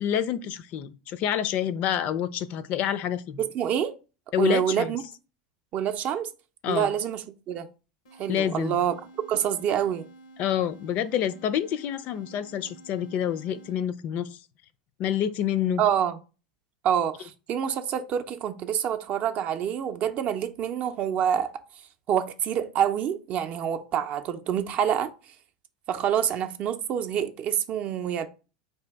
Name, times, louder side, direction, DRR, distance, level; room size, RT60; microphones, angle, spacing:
voice 1, 0.0-3.4 4.3-5.0 6.6-6.9 8.3-8.8 10.4-14.4 15.0-15.8, left 9 dB, 50° left, 0.4 m, -28 dB
voice 2, 3.4-3.9 4.4-5.0 5.7-6.3 6.7-7.7 8.2-8.9 9.3-10.1 15.8-16.2 16.8-21.5 22.1-25.1 25.9-28.3, right 9 dB, 45° right, 0.5 m, -27 dB
sound 1, 8.0-14.1, right 2 dB, 90° left, 0.7 m, -51 dB
3.8 x 2.7 x 3.4 m
hypercardioid pair, 100°, 3 cm